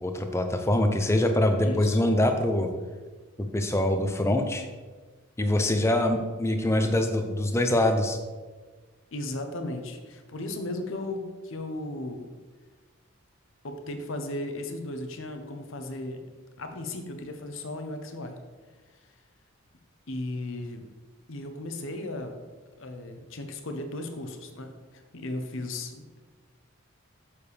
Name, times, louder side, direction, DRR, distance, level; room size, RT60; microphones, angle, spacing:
voice 1, 0.0-2.7 3.4-4.7 5.4-8.2, left 1 dB, 10° left, 6 dB, 0.5 m, -24 dB
voice 2, 1.6-2.0 9.1-12.3 13.6-16.2 16.6-18.4 20.1-20.9 21.3-22.4 22.8-26.2, left 2 dB, 65° left, 5 dB, 0.8 m, -36 dB
7.2 x 6.7 x 3.3 m, 1.4 s
head